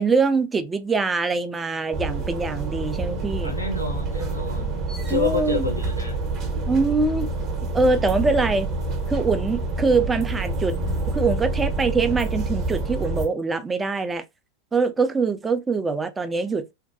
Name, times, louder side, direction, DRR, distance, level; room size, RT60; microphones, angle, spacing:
voice 1, 0.0-3.6 5.1-5.6 6.7-7.3 7.7-8.7 9.1-10.8 11.1-14.2 14.7-16.7, right 4 dB, 15° right, 0.3 m, -23 dB
sound 1, 1.9-13.3, right 2 dB, 30° right, 0.7 m, -27 dB
voice 2, 3.4-6.2, left 3 dB, 85° left, 0.5 m, -28 dB
2.6 x 2.1 x 2.3 m
figure-of-eight pair, 90°, 0 cm